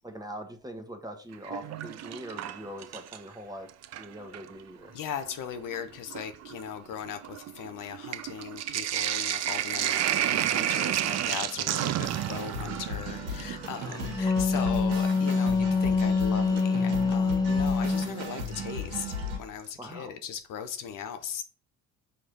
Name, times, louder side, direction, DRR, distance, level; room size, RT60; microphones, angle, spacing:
voice 1, 0.0-4.9 19.8-20.1, equal, 10° right, 1.3 m, -42 dB
Sink (filling or washing), 1.3-3.4 3.7-4.5 5.3-5.4 5.7-14.8 16.6-16.7 18.5-18.9 19.3-19.4 19.6-19.7, right 12 dB, 45° right, 0.5 m, -31 dB
voice 2, 4.9-21.4, left 8 dB, 55° left, 0.8 m, -38 dB
sound 1, 12.0-19.4, equal, 80° right, 1.3 m, -36 dB
Wind instrument woodwind instrument, 13.9-18.1, left 4 dB, 10° left, 1.1 m, -25 dB
5.7 x 3.2 x 5.4 m
hypercardioid pair, 55°, 39 cm